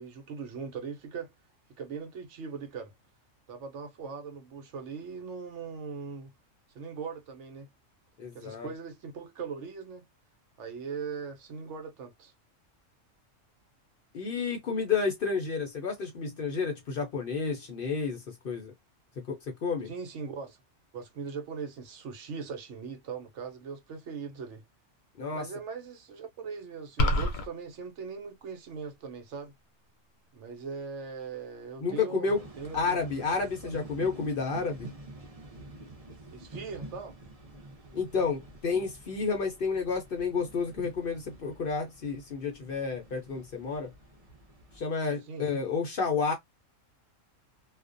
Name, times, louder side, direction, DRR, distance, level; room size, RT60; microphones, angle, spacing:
voice 1, 0.0-1.3 1.8-2.9 3.5-6.3 6.7-7.7 8.3-10.0 10.6-12.3 19.9-20.6 20.9-24.6 25.3-29.5 30.3-32.3 32.6-33.7 36.3-37.2 45.3-45.5, right 5 dB, 70° right, 0.9 m, -40 dB
voice 2, 8.2-8.7 14.1-18.7 19.3-19.4 19.6-19.9 25.2-25.5 31.8-32.4 32.7-34.9 37.9-43.9 44.8-46.3, left 5 dB, 55° left, 0.7 m, -30 dB
sound 1, 27.0-27.5, left 1 dB, 90° left, 1.0 m, -25 dB
sound 2, 32.3-44.8, right 2 dB, 35° right, 0.7 m, -48 dB
2.4 x 2.1 x 2.5 m
omnidirectional pair, 1.3 m